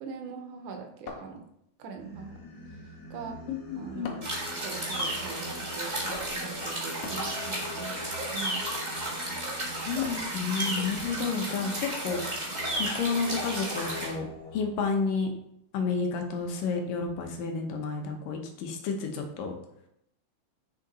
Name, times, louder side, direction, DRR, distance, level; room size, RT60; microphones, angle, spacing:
voice 1, 0.0-1.4 1.8-2.4 3.1-3.4 3.8-4.2 4.6-8.0 8.3-8.6 11.1-11.4, right 6 dB, 75° right, 4 dB, 2.1 m, -41 dB
sound 1, 1.1-1.9 4.0-4.5 7.0-7.4 10.0-10.4, left 4 dB, 70° left, 1.7 m, -43 dB
Singing, 2.0-14.6, left 1 dB, 35° left, 1.8 m, -44 dB
voice 2, 3.5-4.2 9.9-12.2 12.8-14.2 14.5-15.3 15.7-19.5, left 5 dB, 85° left, 4 dB, 2.7 m, -31 dB
sound 2, 4.2-14.1, right 1 dB, 25° right, 1.0 m, -33 dB
6.6 x 5.8 x 4.1 m, 0.77 s
omnidirectional pair, 3.8 m